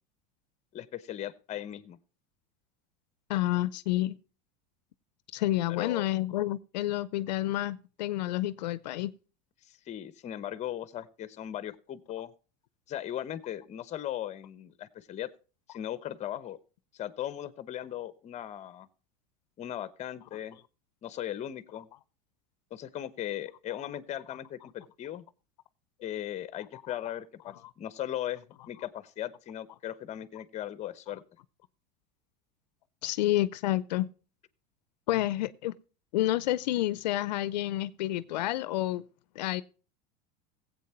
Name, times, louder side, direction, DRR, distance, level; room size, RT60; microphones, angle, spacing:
voice 1, 0.7-2.0 5.8-6.0 9.7-12.3 12.9-15.3 15.7-16.6 16.9-18.9 19.6-20.6 21.0-21.9 22.7-25.2 26.0-31.2, left 11 dB, 35° left, 0.9 m, -38 dB
voice 2, 3.3-4.2 5.3-9.1 33.0-34.1 35.1-35.8 36.1-39.0 39.4-39.6, left 15 dB, 90° left, 0.6 m, -29 dB
16.0 x 8.3 x 4.4 m
supercardioid pair, 120°, 21 cm